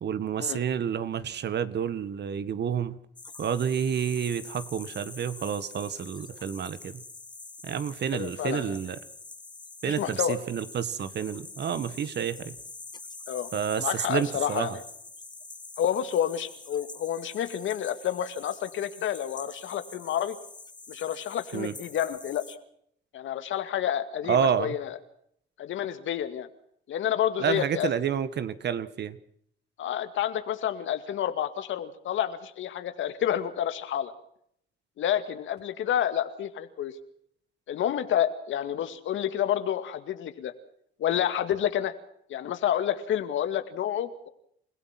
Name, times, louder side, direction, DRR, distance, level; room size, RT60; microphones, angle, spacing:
voice 1, 0.0-3.0 3.4-7.0 7.6-9.0 9.8-12.5 13.5-14.8 21.5-21.7 24.3-24.7 27.4-29.2, right 8 dB, 60° right, 14 dB, 1.7 m, -29 dB
sound 1, 3.2-22.6, left 3 dB, 20° left, 1.9 m, -46 dB
voice 2, 8.1-8.8 9.9-10.4 13.3-13.5 13.8-14.8 15.8-20.4 20.9-22.6 23.1-25.0 25.6-26.5 26.9-27.9 29.8-34.1 35.0-37.0 37.7-40.5 41.0-41.9 42.3-44.3, left 10 dB, 75° left, 10 dB, 2.2 m, -29 dB
29.0 x 16.5 x 6.0 m, 0.68 s
cardioid pair, 90°, 20 cm